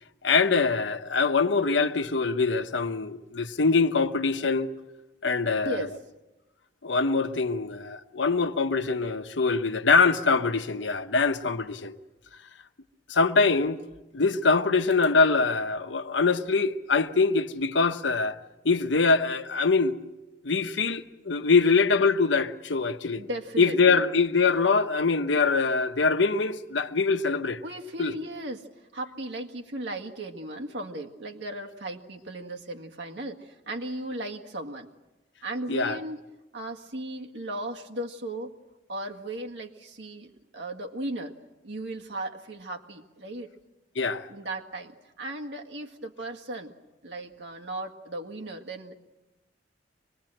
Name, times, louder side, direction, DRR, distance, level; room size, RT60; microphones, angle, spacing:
voice 1, 0.2-4.7 5.2-5.9 6.8-12.0 13.1-13.8 14.1-18.4 18.6-20.0 20.4-23.2 23.6-27.6 28.0-28.1 35.7-36.0 44.0-44.3, left 4 dB, 85° left, 1.0 m, -23 dB
voice 2, 23.2-24.0 27.6-28.7 28.9-34.9 35.4-36.2 36.5-38.5 38.9-41.3 41.6-43.5 44.3-44.9 45.2-46.7 47.0-49.0, right 1 dB, 70° right, 1.8 m, -36 dB
25.5 x 21.0 x 7.8 m
head